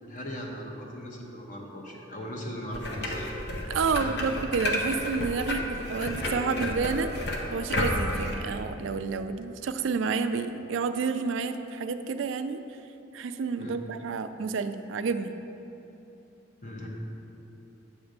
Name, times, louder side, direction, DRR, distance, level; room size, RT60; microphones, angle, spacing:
voice 1, 0.0-3.4 3.8-4.3 13.6-13.8 16.6-16.9, equal, 40° left, -1 dB, 1.0 m, -39 dB
sound 1, 2.7-8.3, left 1 dB, 60° left, 0.8 m, -31 dB
voice 2, 3.6-7.2 7.5-12.6 13.1-15.3, right 5 dB, 75° right, 9 dB, 0.4 m, -30 dB
8.7 x 3.4 x 6.6 m, 2.9 s
head